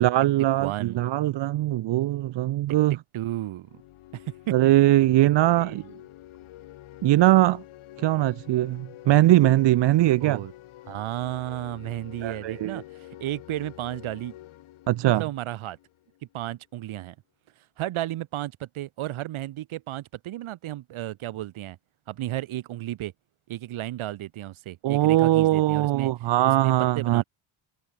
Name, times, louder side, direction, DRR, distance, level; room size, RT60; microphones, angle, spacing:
voice 1, 0.0-2.9 4.5-5.8 7.0-7.6 8.0-10.4 12.2-12.8 14.9-15.2 24.8-27.2, right 15 dB, 60° right, 0.9 m, -21 dB
voice 2, 0.6-1.0 2.7-3.8 4.1-4.6 5.2-5.9 10.2-10.5 10.8-14.3 15.0-15.8 16.3-17.2 17.8-21.8 22.1-23.1 23.5-26.1 26.4-27.2, right 14 dB, 75° right, 8.0 m, -33 dB
sound 1, 3.6-16.2, left 15 dB, 80° left, 7.7 m, -47 dB
open air
cardioid pair, 150°, 48 cm